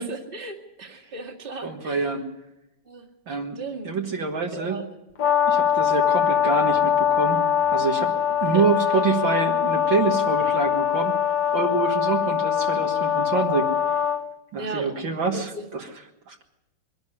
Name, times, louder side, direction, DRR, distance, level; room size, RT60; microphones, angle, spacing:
voice 1, 0.0-2.1 2.9-3.9 4.5-4.8 8.5-8.6 14.6-15.0 15.3-15.7, right 3 dB, 25° right, -1 dB, 2.2 m, -36 dB
voice 2, 1.6-2.3 3.3-3.6 3.8-4.8 5.5-8.1 8.4-11.2 11.5-13.7 14.5-15.9 16.3-16.4, right 4 dB, 60° right, 2 dB, 2.3 m, -26 dB
Brass instrument, 5.2-14.2, left 9 dB, 60° left, 2.0 m, -22 dB
23.0 x 11.5 x 9.8 m, 0.94 s
omnidirectional pair, 2.4 m